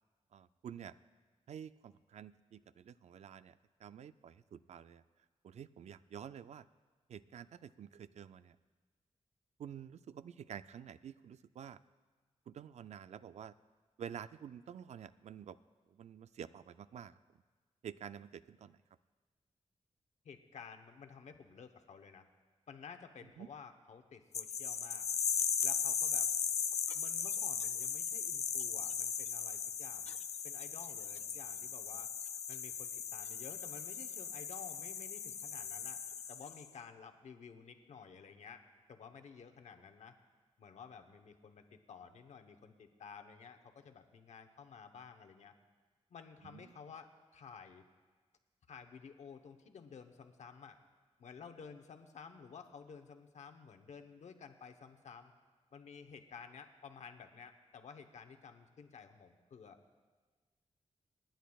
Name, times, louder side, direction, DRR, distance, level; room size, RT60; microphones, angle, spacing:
voice 1, 0.3-0.9 1.5-5.0 5.4-6.7 7.1-8.6 9.6-11.8 12.5-13.6 14.0-15.6 15.9-17.2 17.8-18.8 23.4-23.5 46.4-46.6, right 8 dB, 75° right, 14 dB, 0.4 m, -49 dB
voice 2, 20.2-22.3 22.7-25.1 25.6-26.3 26.9-30.2 30.4-32.1 32.5-36.0 36.3-38.6 38.9-40.2 40.6-45.5 46.1-47.8 48.7-50.8 51.2-55.3 55.7-59.8, left 6 dB, 90° left, 7 dB, 0.9 m, -53 dB
sound 1, 24.3-36.7, left 7 dB, 70° left, 0.5 m, -37 dB
29.0 x 10.5 x 2.3 m, 1.4 s
wide cardioid pair, 140°, 12 cm